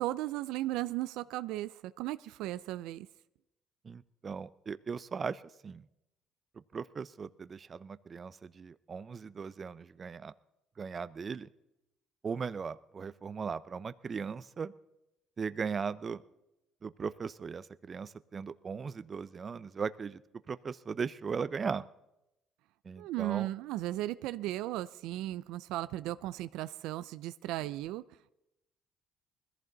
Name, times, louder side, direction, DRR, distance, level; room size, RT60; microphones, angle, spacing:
voice 1, 0.0-3.1 23.0-28.0, right 15 dB, 85° right, 15 dB, 0.4 m, -36 dB
voice 2, 3.8-5.9 6.7-10.3 10.8-11.5 12.2-14.7 15.4-16.2 16.8-20.2 20.5-21.8 22.8-23.5, right 5 dB, 40° right, 16 dB, 0.6 m, -38 dB
20.5 x 14.5 x 4.0 m, 0.89 s
supercardioid pair, 80°, 0 cm